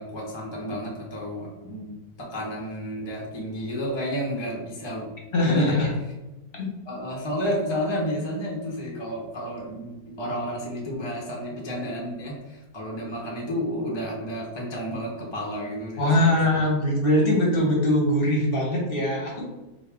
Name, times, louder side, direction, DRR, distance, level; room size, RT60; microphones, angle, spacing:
voice 1, 0.0-5.1 5.4-5.8 6.9-16.6, equal, 25° left, -3 dB, 0.6 m, -31 dB
voice 2, 5.3-5.9 6.5-6.7 16.0-19.5, left 1 dB, 40° left, -2 dB, 1.0 m, -22 dB
4.7 x 2.7 x 3.5 m, 1.0 s
omnidirectional pair, 1.8 m